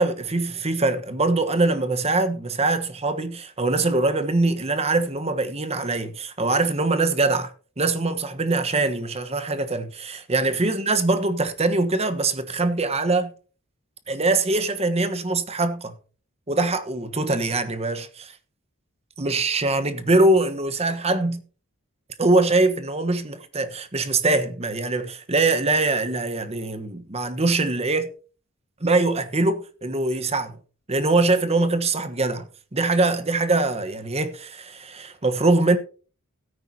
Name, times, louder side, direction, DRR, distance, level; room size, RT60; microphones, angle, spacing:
voice 1, 0.0-13.3 14.1-16.0 16.5-18.3 19.2-21.4 22.2-28.1 28.8-30.6 30.9-32.5 32.7-35.8, right 2 dB, 30° right, 1.2 m, -23 dB
16.5 x 9.6 x 2.8 m
head